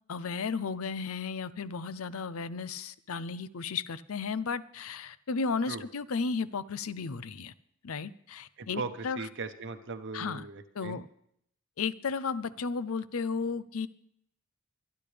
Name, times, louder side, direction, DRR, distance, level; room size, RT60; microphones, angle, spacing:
voice 1, 0.1-7.5 7.8-9.2 10.1-10.5 10.8-11.1 11.8-13.9, left 5 dB, 80° left, 16 dB, 0.6 m, -34 dB
voice 2, 8.6-11.0, right 4 dB, 60° right, 7 dB, 0.9 m, -39 dB
24.0 x 10.5 x 3.4 m, 0.72 s
head